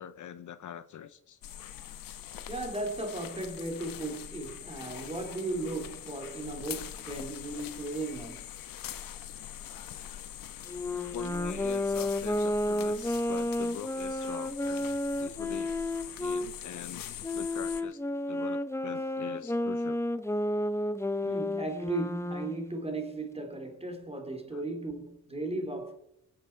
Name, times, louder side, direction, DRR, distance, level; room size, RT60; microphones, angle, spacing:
voice 1, 0.0-1.4 10.9-14.9 15.2-15.7 16.2-17.0 17.3-18.0 18.3-20.0 21.2-21.4 24.5-24.6, left 9 dB, 65° left, 0.8 m, -43 dB
sound 1, 1.4-17.8, left 10 dB, 85° left, 1.1 m, -43 dB
voice 2, 2.5-8.5 21.2-25.9, right 2 dB, 20° right, 2.7 m, -36 dB
Wind instrument woodwind instrument, 10.7-16.5 17.2-22.6, left 1 dB, 10° left, 0.7 m, -31 dB
23.0 x 7.8 x 4.4 m
cardioid pair, 105°, 33 cm